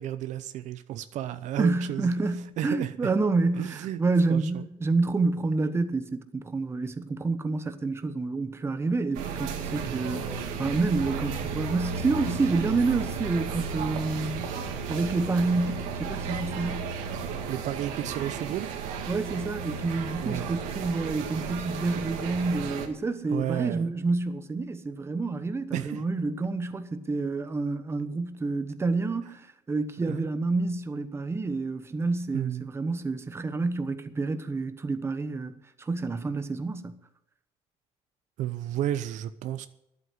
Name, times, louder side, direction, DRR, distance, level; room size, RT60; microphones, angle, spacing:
voice 1, 0.0-2.1 2.6-2.9 3.6-4.0 4.3-4.6 9.8-10.1 17.5-18.7 20.2-20.5 23.3-23.9 25.7-26.0 30.1-30.2 32.3-32.7 38.4-39.7, right 12 dB, 65° right, 0.7 m, -32 dB
voice 2, 1.6-14.5 14.9-16.9 19.1-37.0, right 3 dB, 20° right, 1.1 m, -28 dB
sound 1, 9.1-22.9, right 5 dB, 85° right, 2.0 m, -34 dB
11.0 x 8.0 x 9.5 m
cardioid pair, 115°, 13 cm